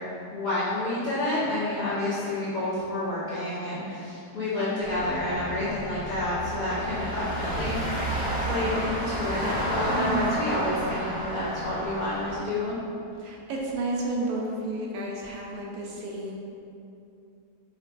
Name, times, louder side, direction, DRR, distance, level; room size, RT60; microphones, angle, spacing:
voice 1, 0.3-7.8 8.1-12.8, left 1 dB, 85° left, -12 dB, 0.4 m, -29 dB
sound 1, 4.8-12.4, equal, 10° right, 0.6 m, -31 dB
voice 2, 9.9-10.4 13.2-16.3, right 2 dB, 75° right, -2 dB, 1.1 m, -31 dB
5.2 x 2.3 x 2.4 m, 2.6 s
omnidirectional pair, 1.8 m